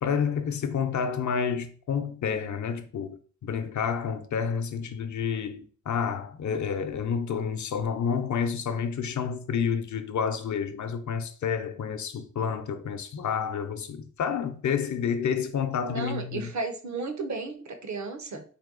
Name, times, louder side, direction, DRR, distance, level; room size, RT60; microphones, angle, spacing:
voice 1, 0.0-16.5, left 7 dB, 75° left, 0.6 m, -29 dB
voice 2, 15.8-18.4, right 3 dB, 70° right, 0.9 m, -34 dB
4.3 x 2.7 x 3.8 m
wide cardioid pair, 95°, 30 cm